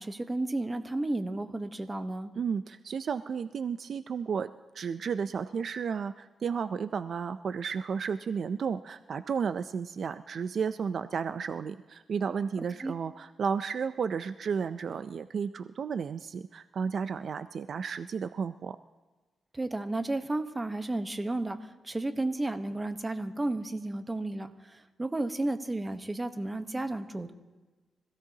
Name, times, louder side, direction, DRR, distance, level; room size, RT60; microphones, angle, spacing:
voice 1, 0.0-2.3 12.8-12.9 19.5-27.3, right 2 dB, 20° right, 8 dB, 1.0 m, -33 dB
voice 2, 2.4-18.8, right 6 dB, 60° right, 12 dB, 0.4 m, -33 dB
25.5 x 16.5 x 2.8 m, 1.2 s
cardioid pair, 100°, 0 cm